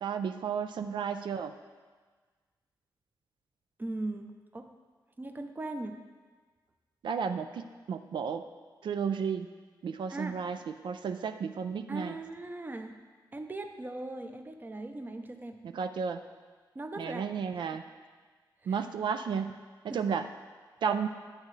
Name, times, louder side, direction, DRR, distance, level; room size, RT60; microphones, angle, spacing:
voice 1, 0.0-1.5 7.0-8.4 8.8-9.5 9.8-10.6 10.8-12.1 15.6-16.2 17.0-17.8 18.7-19.5 19.8-20.2 20.8-21.1, right 6 dB, 90° right, 8 dB, 0.4 m, -33 dB
voice 2, 3.8-4.7 5.2-6.0 10.1-10.4 11.9-13.0 13.3-15.6 16.7-17.2 17.7-17.8 18.6-18.8 19.9-20.0 20.9-21.1, right 2 dB, 25° right, 6 dB, 0.6 m, -39 dB
10.5 x 7.6 x 3.2 m, 1.4 s
wide cardioid pair, 115°, 8 cm